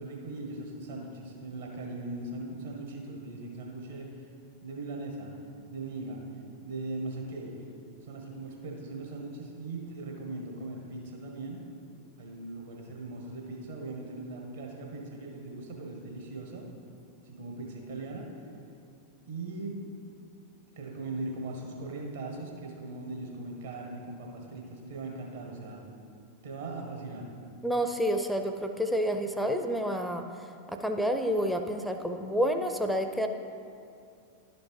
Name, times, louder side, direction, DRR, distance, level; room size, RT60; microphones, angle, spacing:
voice 1, 0.0-4.3 4.6-5.3 5.7-6.2 6.6-7.5 8.0-11.6 12.2-16.7 17.2-18.3 19.3-19.8 20.7-25.9 26.4-27.3, right 2 dB, 65° right, 0 dB, 1.5 m, -39 dB
voice 2, 27.6-30.2 30.8-33.3, equal, ahead, 6 dB, 0.4 m, -29 dB
11.5 x 5.2 x 4.6 m, 2.4 s
figure-of-eight pair, 90°, 0 cm